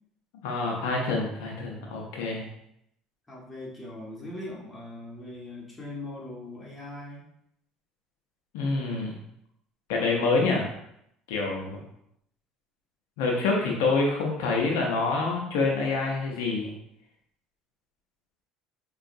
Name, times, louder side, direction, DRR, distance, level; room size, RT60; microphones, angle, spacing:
voice 1, 0.4-2.5 8.5-9.2 9.9-10.7 11.3-11.8 13.2-16.7, left 3 dB, 85° left, -1 dB, 0.6 m, -26 dB
voice 2, 3.3-7.3, left 1 dB, 15° left, -4 dB, 1.4 m, -40 dB
4.6 x 2.3 x 2.6 m, 0.76 s
supercardioid pair, 85°, 0 cm